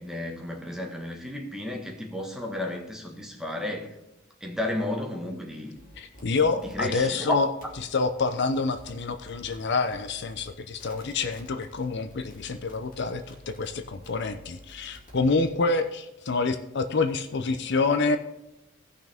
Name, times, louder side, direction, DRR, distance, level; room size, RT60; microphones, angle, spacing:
voice 1, 0.0-3.9 4.4-5.8 6.6-7.4, left 1 dB, 5° right, 1 dB, 1.4 m, -32 dB
sound 1, 5.8-7.0 7.6-7.8 8.7-9.5 9.9-10.5 10.8-15.5, equal, 45° left, 2.5 m, -50 dB
voice 2, 6.0-7.5 7.9-18.2, left 4 dB, 60° left, 9 dB, 0.6 m, -27 dB
17.0 x 6.1 x 3.5 m, 0.92 s
head